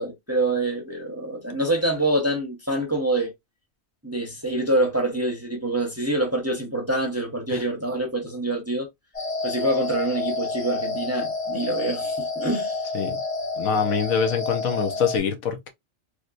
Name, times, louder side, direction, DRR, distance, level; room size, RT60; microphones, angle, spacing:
voice 1, 0.0-3.3 4.0-8.9 9.4-12.7, right 1 dB, 15° right, 0.7 m, -26 dB
sound 1, 9.1-15.2, left 3 dB, 30° left, 1.2 m, -29 dB
voice 2, 13.6-15.7, left 6 dB, 85° left, 1.2 m, -25 dB
3.3 x 2.7 x 2.5 m
omnidirectional pair, 1.4 m